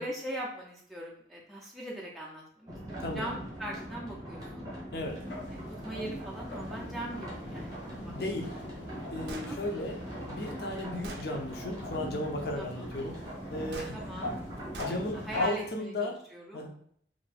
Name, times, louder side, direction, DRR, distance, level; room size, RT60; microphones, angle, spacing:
voice 1, 0.0-4.6 5.5-7.8 8.0-8.1 8.9-9.0 9.4-9.9 12.6-12.9 13.9-14.4 15.1-16.6, right 1 dB, ahead, -3 dB, 0.4 m, -41 dB
sound 1, 2.7-15.5, equal, 20° right, 0.8 m, -41 dB
voice 2, 3.0-3.3 4.9-5.2 8.1-8.5 9.1-10.0 10.3-13.2 13.5-14.0 14.8-16.1 16.5-16.7, left 1 dB, 60° left, 1 dB, 0.6 m, -35 dB
sound 2, 5.0-15.7, left 1 dB, 90° left, 0.8 m, -43 dB
Gunshot gunfire, 9.3-9.5 10.4-10.5 11.0-11.3 13.7-13.9 14.7-15.0, right 2 dB, 65° right, 0.4 m, -41 dB
2.7 x 2.5 x 3.3 m, 0.63 s
head